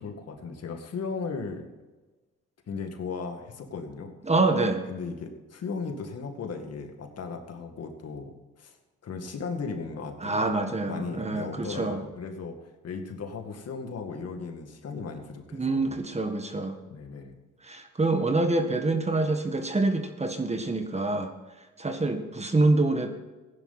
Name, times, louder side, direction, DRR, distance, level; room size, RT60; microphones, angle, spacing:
voice 1, 0.0-1.7 2.7-4.1 4.9-8.8 9.0-10.4 10.9-16.0 16.9-17.4, left 4 dB, 55° left, 4 dB, 2.1 m, -36 dB
voice 2, 4.2-4.8 10.2-12.0 15.5-16.7 17.6-21.3 21.8-23.1, right 2 dB, 20° right, 6 dB, 1.6 m, -26 dB
15.5 x 10.5 x 4.3 m, 1.2 s
cardioid pair, 90°, 30 cm